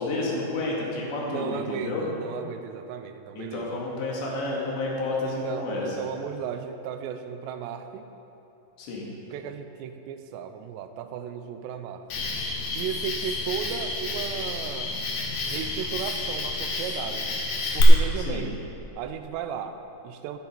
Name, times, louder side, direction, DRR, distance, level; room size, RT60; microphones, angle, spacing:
voice 1, 0.0-2.0 3.4-6.1 8.8-9.0 18.2-18.4, left 2 dB, 85° left, -4 dB, 4.4 m, -30 dB
voice 2, 1.2-3.9 5.2-8.1 9.3-12.3 12.8-15.0 15.5-17.4 17.7-18.5 19.0-20.4, right 8 dB, 85° right, 8 dB, 2.9 m, -35 dB
Cricket, 12.1-17.8, left 3 dB, 60° left, 3.1 m, -30 dB
15.5 x 11.5 x 4.6 m, 2.9 s
omnidirectional pair, 4.9 m